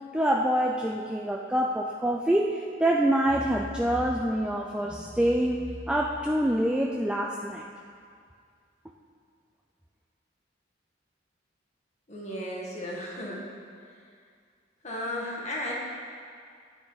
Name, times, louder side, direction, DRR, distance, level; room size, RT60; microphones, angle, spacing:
voice 1, 0.1-7.7, right 1 dB, 5° right, -1 dB, 0.4 m, -26 dB
voice 2, 12.1-13.4 14.8-15.7, left 1 dB, 40° left, -3 dB, 1.9 m, -34 dB
12.5 x 9.0 x 4.0 m, 2.2 s
head